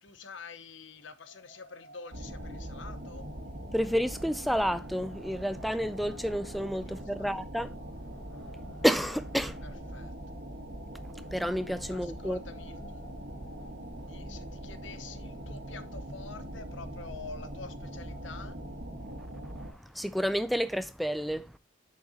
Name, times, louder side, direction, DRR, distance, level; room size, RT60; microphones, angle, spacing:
voice 1, 0.0-3.2 7.2-7.3 9.6-10.1 11.9-13.0 14.1-18.5, left 4 dB, 80° left, 0.8 m, -47 dB
sound 1, 1.0-19.9, left 2 dB, 55° left, 2.7 m, -59 dB
sound 2, 2.1-19.7, right 1 dB, 80° right, 1.8 m, -42 dB
voice 2, 3.7-7.7 8.8-9.6 11.3-12.4 19.7-21.6, equal, ahead, 0.3 m, -30 dB
6.6 x 5.1 x 4.1 m
head